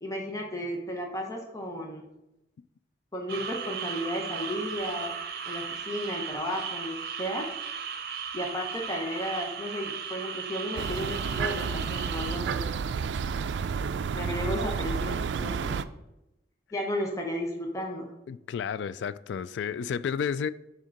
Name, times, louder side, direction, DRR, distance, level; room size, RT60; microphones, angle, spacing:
voice 1, 0.0-2.1 3.1-5.2 5.4-7.5 8.3-12.7 14.1-15.8 16.7-18.1, equal, 20° left, 0.9 m, -34 dB
sound 1, 3.3-12.4, right 6 dB, 65° right, 0.8 m, -36 dB
sound 2, 10.8-15.8, right 6 dB, 80° right, 0.3 m, -31 dB
voice 2, 18.3-20.5, left 7 dB, 85° left, 0.3 m, -31 dB
6.4 x 3.8 x 5.7 m
head